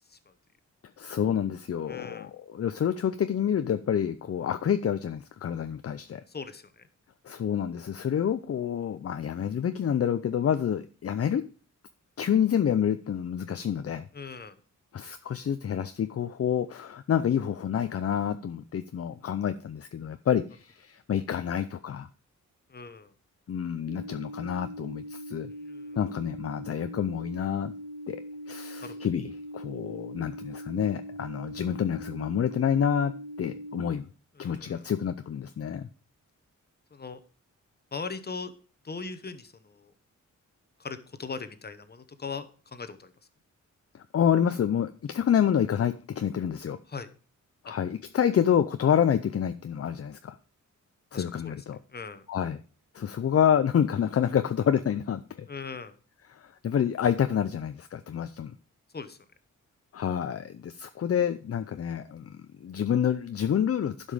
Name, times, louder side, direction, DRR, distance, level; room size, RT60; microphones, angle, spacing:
voice 1, 1.0-6.2 7.2-11.4 12.2-14.1 14.9-22.1 23.5-25.5 25.9-27.7 28.1-28.2 28.5-34.1 34.4-35.9 43.9-46.8 47.6-50.4 51.1-51.8 52.3-52.6 52.9-55.5 56.3-58.5 59.9-64.1, left 8 dB, 50° left, 10 dB, 0.6 m, -28 dB
voice 2, 1.9-2.3 6.3-6.9 14.1-14.6 22.7-23.1 25.5-26.0 28.8-28.9 34.4-34.9 36.9-37.2 37.9-38.5 38.8-39.9 40.8-43.1 46.9-47.1 47.7-47.8 51.1-51.5 51.9-52.2 55.5-55.9 58.9-59.2, left 4 dB, 30° left, 11 dB, 1.1 m, -40 dB
sound 1, 23.9-33.9, equal, 45° right, 3.0 m, -41 dB
11.5 x 5.3 x 5.0 m, 0.37 s
wide cardioid pair, 100°, 31 cm